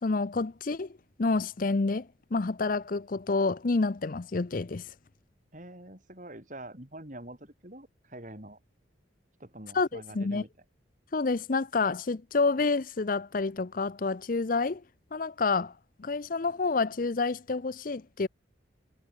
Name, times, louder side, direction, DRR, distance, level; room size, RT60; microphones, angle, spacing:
voice 1, 0.0-0.9 1.2-4.9 9.7-10.4 11.1-14.8 15.1-15.7 16.0-18.3, left 3 dB, 45° left, 0.6 m, -28 dB
voice 2, 5.5-8.6 9.4-10.5, right 1 dB, 40° right, 3.7 m, -45 dB
head